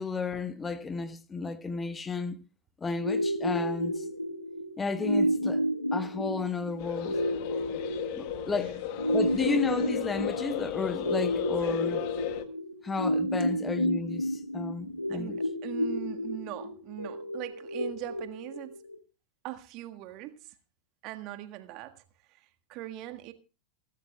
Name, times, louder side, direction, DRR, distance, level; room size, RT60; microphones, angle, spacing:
voice 1, 0.0-2.4 2.8-4.1 4.8-5.6 5.9-7.2 8.1-8.8 9.1-12.0 12.8-15.4, left 4 dB, 15° left, 1.2 m, -33 dB
sound 1, 3.0-19.0, equal, 85° left, 1.5 m, -31 dB
sound 2, 6.8-12.4, left 12 dB, 45° left, 1.5 m, -35 dB
voice 2, 15.1-18.8 19.4-20.5 21.0-22.0 22.3-23.3, right 15 dB, 40° right, 1.6 m, -41 dB
28.0 x 12.5 x 2.3 m
figure-of-eight pair, 90°, 0 cm